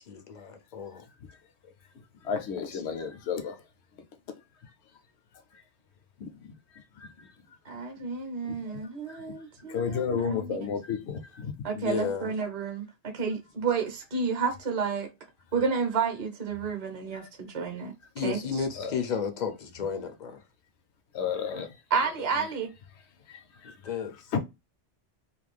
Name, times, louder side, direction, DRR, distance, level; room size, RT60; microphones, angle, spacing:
voice 1, 0.0-1.0 2.7-2.8 11.7-12.3 18.1-20.4 21.5-21.7 22.2-22.5 23.6-24.3, left 6 dB, 55° left, 0.5 m, -33 dB
voice 2, 1.9-3.6 4.6-4.7 5.5-5.6 6.2-6.5 6.7-7.8 8.4-9.3 9.7-11.5 17.1-17.3 18.8-19.0 21.1-21.8 23.3-23.8 24.3-24.4, left 6 dB, 75° left, 0.9 m, -34 dB
voice 3, 7.7-10.5 11.6-12.9 13.1-15.1 15.5-17.9 18.2-18.4 21.9-22.7, right 5 dB, 40° right, 0.7 m, -30 dB
2.5 x 2.2 x 3.2 m
omnidirectional pair, 1.2 m